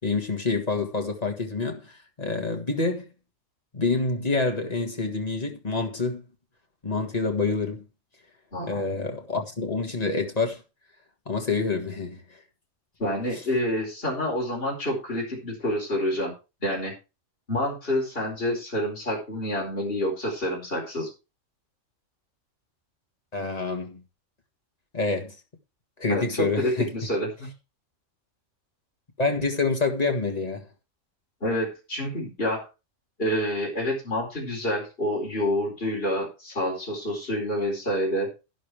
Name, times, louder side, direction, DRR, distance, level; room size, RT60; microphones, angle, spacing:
voice 1, 0.0-3.1 3.7-6.2 6.8-7.9 8.6-10.6 11.2-12.2 23.3-24.0 24.9-25.3 26.0-26.9 29.2-30.6, left 3 dB, 30° left, 1.8 m, -27 dB
voice 2, 8.5-8.9 13.0-16.3 16.6-16.9 17.5-21.1 26.1-27.5 31.4-32.7 33.2-38.3, equal, 45° left, 5.0 m, -28 dB
11.5 x 11.0 x 3.4 m
omnidirectional pair, 1.4 m